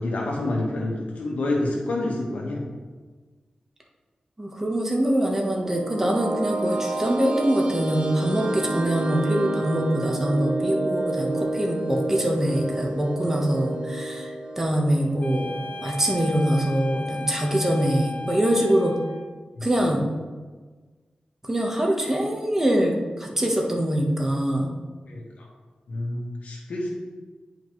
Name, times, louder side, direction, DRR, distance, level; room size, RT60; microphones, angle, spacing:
voice 1, 0.0-2.6 19.6-20.0 25.1-25.4 25.9-26.9, left 2 dB, 90° left, -1 dB, 1.5 m, -28 dB
voice 2, 4.4-18.9 19.6-20.0 21.4-24.7, right 1 dB, 15° right, 0 dB, 1.2 m, -24 dB
sound 1, 5.3-16.1, right 2 dB, 50° right, 0.6 m, -30 dB
sound 2, 15.2-19.4, left 2 dB, 65° left, 0.6 m, -36 dB
9.9 x 5.1 x 3.2 m, 1.4 s
wide cardioid pair, 100°, 2 cm